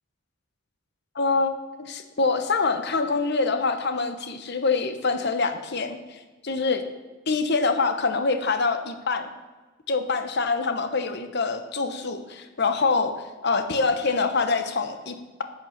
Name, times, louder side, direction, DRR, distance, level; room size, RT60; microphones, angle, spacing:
voice 1, 1.1-1.5 1.8-6.8 7.3-9.3 9.9-15.4, left 4 dB, 55° left, 8 dB, 1.0 m, -25 dB
10.5 x 8.7 x 7.3 m, 1.3 s
head